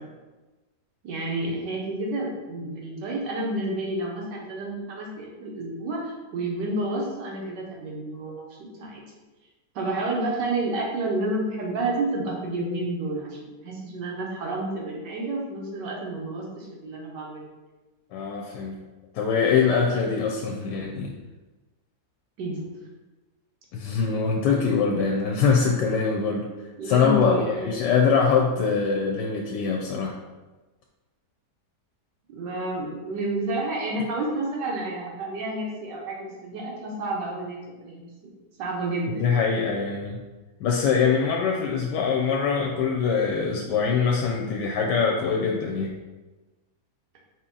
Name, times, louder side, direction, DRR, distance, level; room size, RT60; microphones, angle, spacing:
voice 1, 1.0-9.0 9.7-17.5 22.4-22.7 26.8-27.8 32.3-39.4, right 2 dB, 85° right, -1 dB, 1.5 m, -30 dB
voice 2, 18.1-18.8 19.1-21.1 23.7-26.5 26.9-30.2 39.1-40.2 40.6-45.9, left 5 dB, 90° left, 0 dB, 1.2 m, -23 dB
4.8 x 2.8 x 3.8 m, 1.2 s
omnidirectional pair, 1.8 m